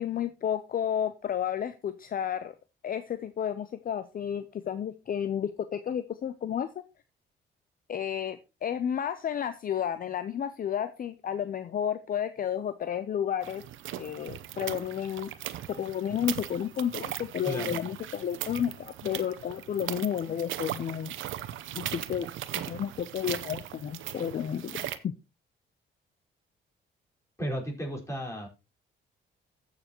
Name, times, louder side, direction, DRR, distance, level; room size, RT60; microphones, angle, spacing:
voice 1, 0.0-2.5 2.8-6.7 7.9-13.6 14.0-15.3 15.7-21.1 21.7-22.3 22.7-25.1, left 9 dB, 45° left, 12 dB, 0.6 m, -32 dB
sound 1, 13.4-25.0, right 12 dB, 80° right, 0.8 m, -38 dB
voice 2, 17.4-17.8 27.4-28.5, equal, 15° left, -1 dB, 4.6 m, -34 dB
15.0 x 6.8 x 3.0 m, 0.28 s
cardioid pair, 90°, 20 cm